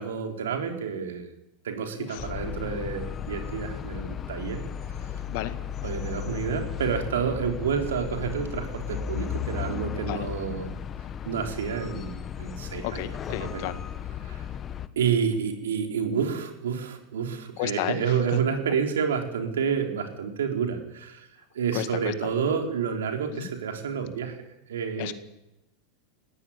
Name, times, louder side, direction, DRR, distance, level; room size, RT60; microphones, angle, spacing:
voice 1, 0.0-1.3 1.6-4.6 5.8-10.8 11.3-13.1 13.4-13.6 14.2-14.5 15.0-21.3 21.5-24.4 24.7-25.1, right 7 dB, 80° right, 4 dB, 3.8 m, -29 dB
voice 2, 2.0-2.3 5.3-5.6 10.0-10.3 12.8-13.8 17.6-18.4 21.7-22.3 23.3-23.5 25.0-25.1, left 15 dB, 60° left, 10 dB, 1.9 m, -33 dB
sound 1, 2.2-14.9, left 9 dB, 30° left, 1.3 m, -35 dB
18.5 x 15.0 x 9.9 m, 0.91 s
hypercardioid pair, 105°, 0 cm